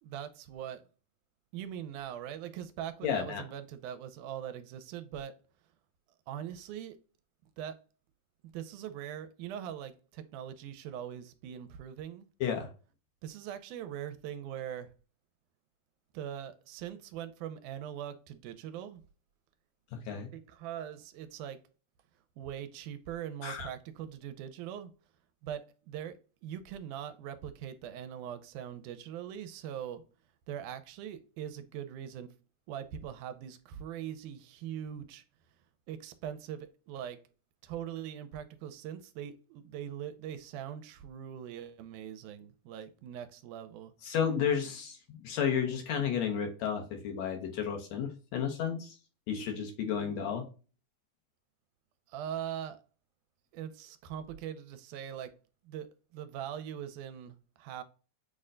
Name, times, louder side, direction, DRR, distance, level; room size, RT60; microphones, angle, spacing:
voice 1, 0.0-0.8 1.5-5.4 6.3-7.0 7.6-7.7 8.5-12.3 13.2-14.9 16.1-19.0 20.3-21.6 22.4-24.9 25.4-30.0 30.5-32.3 32.7-35.2 35.9-37.2 37.6-43.9 52.1-52.8 53.5-55.3 55.6-57.8, right 10 dB, 90° right, 2.1 m, -41 dB
voice 2, 3.0-3.4 12.4-12.7 19.9-20.3 23.4-23.7 44.0-49.0 49.3-50.5, left 7 dB, 70° left, 2.0 m, -32 dB
6.5 x 2.2 x 3.7 m
omnidirectional pair, 3.5 m